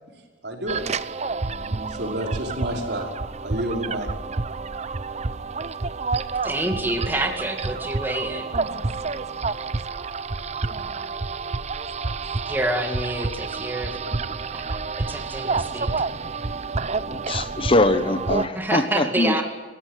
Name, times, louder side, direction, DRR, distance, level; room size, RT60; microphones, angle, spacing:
voice 1, 0.4-0.8 1.6-3.2 3.4-4.1, right 1 dB, 60° right, 2 dB, 5.3 m, -30 dB
sound 1, 0.7-18.5, right 4 dB, 35° right, 0.8 m, -29 dB
voice 2, 6.4-8.5 12.5-14.0 15.1-15.9 18.6-19.4, right 1 dB, 10° right, 3 dB, 2.3 m, -27 dB
voice 3, 17.3-19.4, left 2 dB, 30° left, 11 dB, 1.2 m, -22 dB
30.0 x 16.0 x 9.2 m, 1.4 s
head